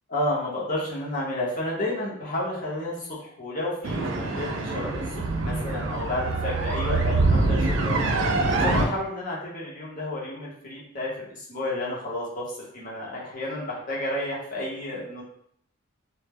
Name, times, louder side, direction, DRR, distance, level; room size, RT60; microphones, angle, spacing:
voice 1, 0.1-8.2 8.6-15.2, left 1 dB, 40° left, -5 dB, 0.7 m, -31 dB
sound 1, 3.8-8.8, right 3 dB, 60° right, 0.3 m, -25 dB
2.1 x 2.0 x 3.4 m, 0.69 s
head